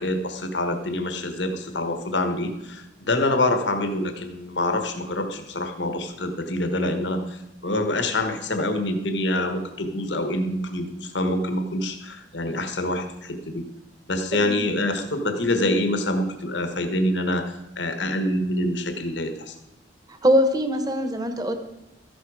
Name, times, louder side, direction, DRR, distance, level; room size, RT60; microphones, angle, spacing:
voice 1, 0.0-13.6 14.1-19.5, left 1 dB, 70° left, 7 dB, 1.4 m, -26 dB
voice 2, 20.2-21.5, equal, 20° right, 7 dB, 1.3 m, -22 dB
13.5 x 11.0 x 4.9 m, 0.90 s
head